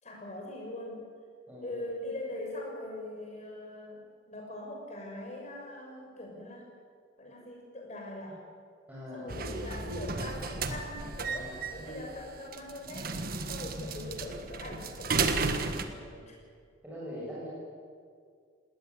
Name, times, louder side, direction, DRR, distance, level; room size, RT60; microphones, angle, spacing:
voice 1, 0.0-1.0 1.6-4.0 4.3-6.7 7.2-8.4 9.1-13.1 13.5-15.8 16.3-16.4, left 1 dB, 35° left, -1 dB, 6.8 m, -42 dB
voice 2, 1.5-1.8 8.9-10.3 11.3-12.1 13.6-13.7 15.9-16.3 16.8-17.5, equal, 10° right, -8 dB, 7.5 m, -43 dB
sound 1, 9.3-15.9, right 4 dB, 50° right, 1.6 m, -34 dB
20.0 x 18.0 x 9.9 m, 2.1 s
head